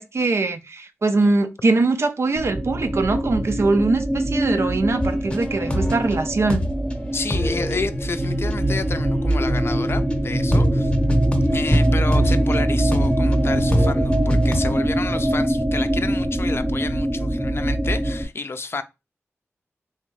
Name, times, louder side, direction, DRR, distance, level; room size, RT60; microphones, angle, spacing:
voice 1, 0.0-6.6, right 3 dB, 60° right, 0.5 m, -22 dB
sound 1, 2.4-18.2, right 1 dB, 10° right, 0.5 m, -23 dB
sound 2, 5.0-6.2 6.5-6.9 7.3-9.8 10.1-10.2 10.5-14.9, right 1 dB, 20° left, 0.8 m, -23 dB
voice 2, 7.1-10.9 11.5-18.8, left 4 dB, 55° left, 0.4 m, -30 dB
3.5 x 2.6 x 3.2 m
cardioid pair, 60°, 5 cm